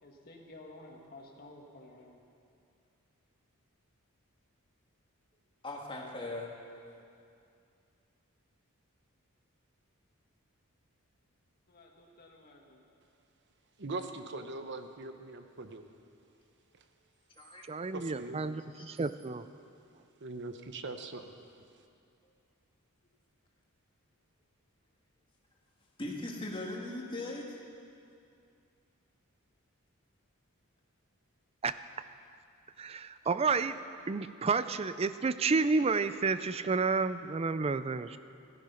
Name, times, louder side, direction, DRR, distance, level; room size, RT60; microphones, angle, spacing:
voice 1, 0.0-2.2 11.7-12.8, left 2 dB, 45° left, 0 dB, 1.8 m, -53 dB
voice 2, 5.6-6.5 17.4-17.6 18.8-18.9 26.0-27.6, left 2 dB, 25° left, -1 dB, 1.8 m, -39 dB
voice 3, 13.8-15.8 17.9-18.4 20.2-21.3, right 3 dB, 55° right, 7 dB, 0.9 m, -41 dB
voice 4, 17.7-19.5 31.6-31.7 32.8-33.8 34.1-38.2, right 4 dB, 25° right, 13 dB, 0.4 m, -30 dB
14.0 x 13.0 x 5.7 m, 2.5 s
head